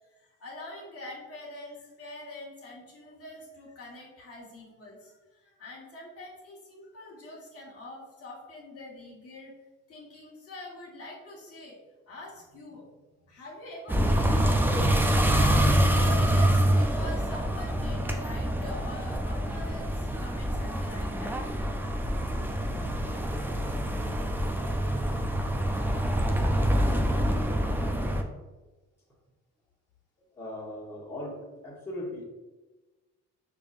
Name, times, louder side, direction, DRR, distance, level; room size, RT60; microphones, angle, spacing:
voice 1, 0.1-9.5 9.9-11.8 12.1-12.9 13.2-21.5, left 1 dB, 50° left, -4 dB, 1.3 m, -44 dB
sound 1, 13.9-28.2, equal, 5° right, 0.3 m, -26 dB
voice 2, 30.4-32.2, left 1 dB, 10° left, -6 dB, 1.1 m, -38 dB
4.8 x 2.6 x 2.5 m, 1.2 s
cardioid pair, 90°, 30 cm